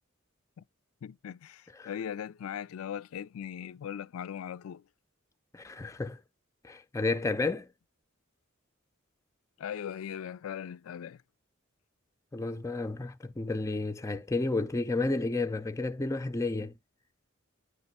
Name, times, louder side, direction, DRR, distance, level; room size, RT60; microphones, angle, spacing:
voice 1, 1.0-4.8 9.6-11.2, left 9 dB, 85° left, 0.3 m, -39 dB
voice 2, 5.5-6.2 6.6-7.7 12.3-16.7, left 3 dB, 15° left, 0.4 m, -31 dB
9.6 x 3.2 x 4.1 m
head